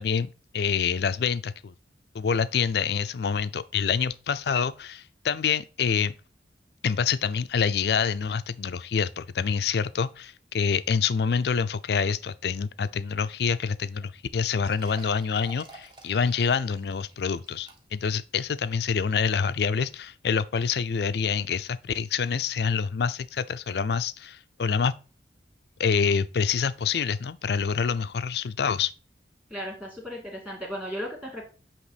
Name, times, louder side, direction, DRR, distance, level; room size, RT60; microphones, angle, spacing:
voice 1, 0.0-1.7 2.1-6.1 6.8-24.9 25.8-28.9, left 6 dB, 60° left, 0.4 m, -26 dB
sound 1, 14.0-14.1 14.5-18.1 18.6-18.7 19.3-19.4, right 2 dB, 25° right, 1.2 m, -50 dB
voice 2, 29.5-31.4, equal, 10° right, 2.3 m, -35 dB
7.9 x 3.0 x 5.0 m
head